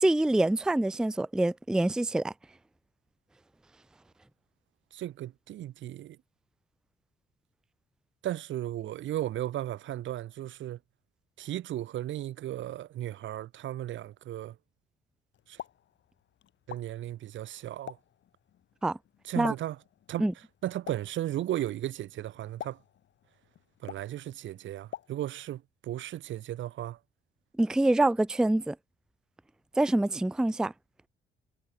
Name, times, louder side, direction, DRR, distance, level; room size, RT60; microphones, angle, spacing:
voice 1, 0.0-2.3 18.8-19.0 19.4-19.5 20.2-20.3 27.6-28.8 29.8-30.7, right 2 dB, 5° right, 0.4 m, -25 dB
voice 2, 4.9-6.2 8.2-10.8 11.4-14.6 15.5-15.6 16.7-18.0 19.2-19.8 20.1-20.3 20.6-22.8 23.8-27.0, right 13 dB, 75° right, 1.2 m, -35 dB
Explosion, 15.3-25.6, left 11 dB, 65° left, 2.1 m, -49 dB
cardioid pair, 90°, 20 cm